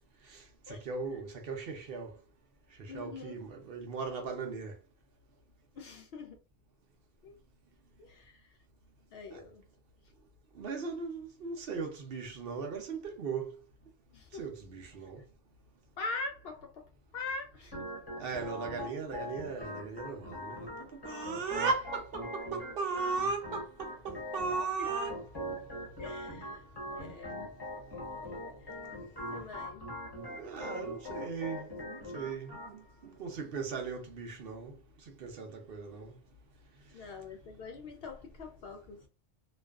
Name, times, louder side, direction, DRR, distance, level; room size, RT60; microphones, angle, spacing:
voice 1, 0.3-2.1 2.8-4.7 9.3-9.4 10.6-13.5 14.4-15.2 18.2-20.7 21.0-25.1 30.2-34.7 35.2-36.1, right 4 dB, 60° right, 0.7 m, -37 dB
voice 2, 2.9-3.3 5.8-6.4 7.2-7.3 8.0-8.5 9.1-9.6 14.1-14.5 16.0-17.8 24.8-24.9 26.0-27.5 29.3-29.9 36.9-39.1, left 3 dB, 65° left, 0.7 m, -43 dB
Organ, 17.7-32.7, left 1 dB, 25° left, 0.9 m, -42 dB
2.5 x 2.3 x 2.3 m
omnidirectional pair, 1.2 m